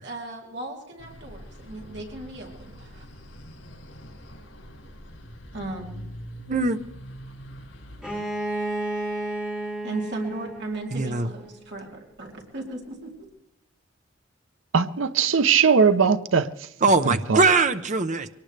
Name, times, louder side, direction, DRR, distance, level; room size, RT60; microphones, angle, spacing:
voice 1, 0.0-3.0 5.5-6.0 9.8-13.1, right 2 dB, 60° right, 3.1 m, -36 dB
sound 1, 1.0-8.0, equal, 85° left, 5.1 m, -43 dB
voice 2, 6.5-6.8 10.9-11.3 16.8-18.3, right 3 dB, 40° right, 0.8 m, -21 dB
Bowed string instrument, 8.0-11.7, right 1 dB, 5° right, 4.2 m, -32 dB
voice 3, 14.7-16.5 17.1-17.4, right 6 dB, 75° right, 0.7 m, -20 dB
23.5 x 18.5 x 3.3 m
head